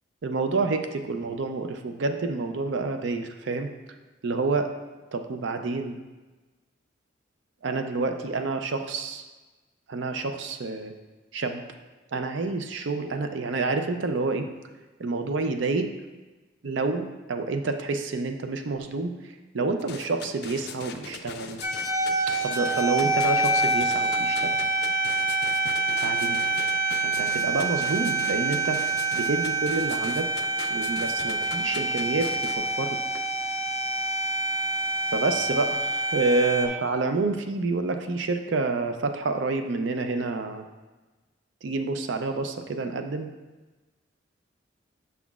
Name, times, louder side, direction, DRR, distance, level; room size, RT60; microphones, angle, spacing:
voice 1, 0.2-3.7 4.2-4.7 5.1-6.0 7.6-9.2 9.9-10.9 11.3-11.6 12.1-14.5 15.0-15.9 16.6-21.6 22.4-24.6 26.0-26.4 27.0-28.8 29.1-30.3 30.7-33.0 35.1-40.7 41.6-43.3, right 3 dB, 70° right, 6 dB, 0.5 m, -28 dB
sound 1, 19.8-32.6, left 6 dB, 55° left, 0.4 m, -40 dB
sound 2, 21.6-36.7, right 2 dB, 15° right, 0.4 m, -26 dB
7.1 x 5.7 x 2.4 m, 1.2 s
head